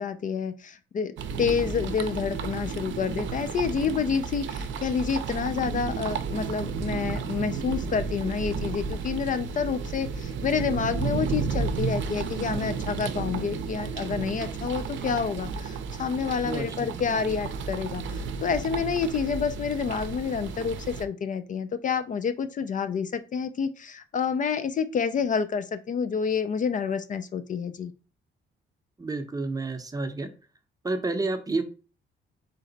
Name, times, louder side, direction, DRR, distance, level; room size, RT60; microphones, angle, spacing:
voice 1, 0.0-27.9, left 6 dB, 40° left, 11 dB, 0.4 m, -28 dB
sound 1, 1.2-21.1, right 5 dB, 70° right, 0.6 m, -32 dB
voice 2, 16.4-16.9 29.0-30.3 30.8-31.6, right 3 dB, 20° right, 7 dB, 0.7 m, -30 dB
4.0 x 3.2 x 3.9 m, 0.36 s
cardioid pair, 90°, 20 cm